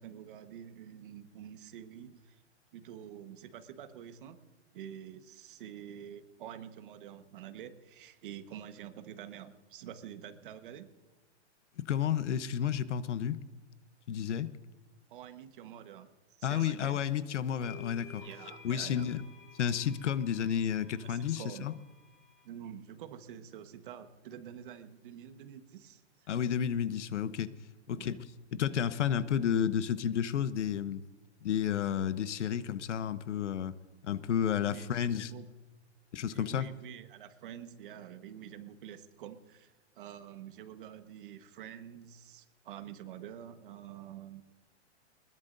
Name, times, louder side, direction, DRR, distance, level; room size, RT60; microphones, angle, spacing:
voice 1, 0.0-2.4 2.7-4.4 4.7-10.9 15.1-16.1 16.4-17.0 18.2-19.1 21.1-21.7 22.4-26.3 27.9-28.2 28.7-28.8 34.6-35.5 36.3-44.4, right 10 dB, 45° right, 9 dB, 1.4 m, -47 dB
voice 2, 11.8-13.4 14.1-14.5 16.4-18.2 18.6-19.2 19.6-21.7 26.3-27.5 27.9-28.2 28.5-31.0 31.4-33.7 34.0-35.3 36.1-36.7, left 9 dB, 80° left, 14 dB, 1.0 m, -31 dB
sound 1, 17.0-17.1 17.6-22.5, left 5 dB, 30° left, 2.9 m, -53 dB
21.0 x 20.5 x 2.7 m, 1.2 s
hypercardioid pair, 160°, 35 cm